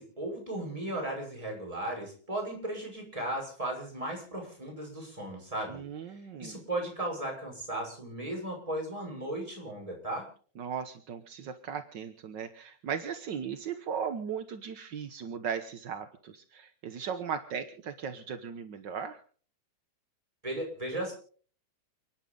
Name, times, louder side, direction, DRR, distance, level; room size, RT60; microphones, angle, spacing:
voice 1, 0.0-10.3 20.4-21.1, right 1 dB, 10° right, 0 dB, 6.2 m, -36 dB
voice 2, 5.7-6.5 10.6-19.2, right 7 dB, 60° right, 8 dB, 1.1 m, -37 dB
29.5 x 10.5 x 3.9 m, 0.44 s
omnidirectional pair, 3.4 m